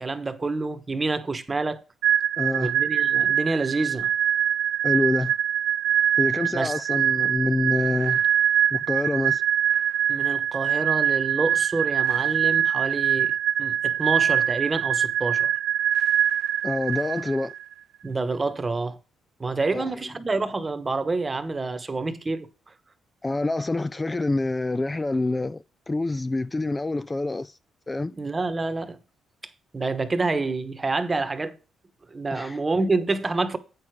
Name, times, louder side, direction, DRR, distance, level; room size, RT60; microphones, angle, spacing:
voice 1, 0.0-1.8 2.6-4.1 6.5-6.7 10.1-13.3 13.6-15.5 18.0-19.0 19.4-22.5 28.1-29.0 29.7-31.6 32.1-33.6, right 3 dB, 25° right, 1.1 m, -27 dB
sound 1, 2.0-17.6, right 10 dB, 70° right, 0.4 m, -23 dB
voice 2, 2.4-2.7 4.8-5.3 6.2-8.2 8.7-9.4 16.6-17.5 19.7-19.9 23.2-27.6 27.9-28.1 32.3-32.6, left 2 dB, 20° left, 0.3 m, -26 dB
8.5 x 6.5 x 4.7 m
cardioid pair, 90°, 0 cm